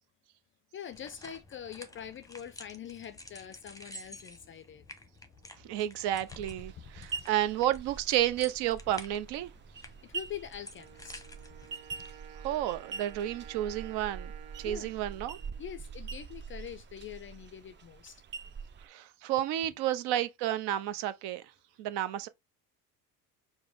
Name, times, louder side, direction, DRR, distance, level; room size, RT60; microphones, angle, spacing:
voice 1, 0.7-4.8 6.8-7.1 9.8-11.2 14.6-14.9 15.6-18.2, left 9 dB, 30° left, 0.4 m, -44 dB
sound 1, 0.9-11.8, left 1 dB, 5° left, 0.8 m, -51 dB
voice 2, 5.7-9.5 12.4-14.3 14.6-15.4 18.8-21.4 21.8-22.3, right 12 dB, 60° right, 0.7 m, -31 dB
sound 2, 6.3-18.9, right 5 dB, 25° right, 0.5 m, -44 dB
Wind instrument woodwind instrument, 10.7-16.5, right 9 dB, 75° right, 1.0 m, -53 dB
4.7 x 2.1 x 3.7 m
hypercardioid pair, 65°, 47 cm